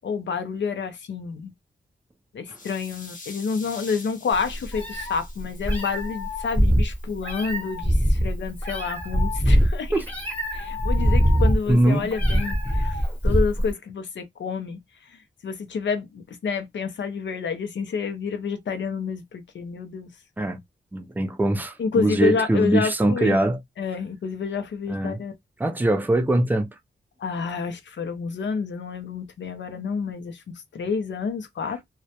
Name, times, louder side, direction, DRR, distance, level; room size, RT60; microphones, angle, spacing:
voice 1, 0.0-1.5 2.3-10.0 10.5-14.8 15.1-20.1 21.8-23.4 23.8-25.3 27.2-30.4 30.7-31.8, left 5 dB, 85° left, 0.5 m, -29 dB
sound 1, 2.5-6.6, left 3 dB, 45° left, 0.7 m, -45 dB
Meow, 4.3-13.7, equal, 10° left, 0.8 m, -23 dB
voice 2, 11.7-12.1 20.4-20.6 20.9-23.6 24.9-25.2 25.6-26.7, right 1 dB, 10° right, 0.3 m, -22 dB
2.2 x 2.1 x 2.7 m
wide cardioid pair, 170°, 19 cm